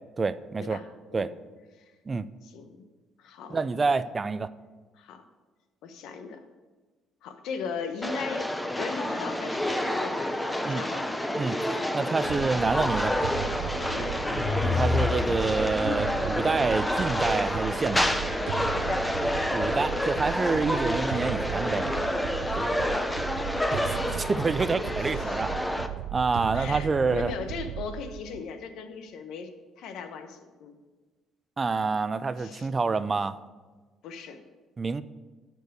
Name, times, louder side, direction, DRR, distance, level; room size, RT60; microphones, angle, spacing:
voice 1, 0.2-0.8 1.1-1.3 2.1-2.3 3.5-4.5 10.6-10.8 11.4-11.5 11.9-13.2 14.6-18.1 19.5-21.9 22.6-22.7 23.7-25.5 26.1-27.3 31.6-33.3 34.8-35.0, right 4 dB, 30° right, 0.4 m, -27 dB
voice 2, 2.4-2.9 3.2-4.0 4.9-5.2 5.8-6.4 7.2-8.5 8.8-11.1 13.8-14.2 18.7-19.1 22.4-22.8 25.0-25.4 26.5-29.5 29.8-30.8 32.4-32.7 34.0-34.4, left 6 dB, 75° left, 1.0 m, -38 dB
sound 1, 8.0-25.9, left 1 dB, 10° left, 0.7 m, -29 dB
sound 2, 12.2-28.4, right 12 dB, 90° right, 0.4 m, -36 dB
sound 3, 14.1-16.1, left 5 dB, 40° left, 0.4 m, -29 dB
12.0 x 4.6 x 6.6 m
cardioid pair, 95°, 0 cm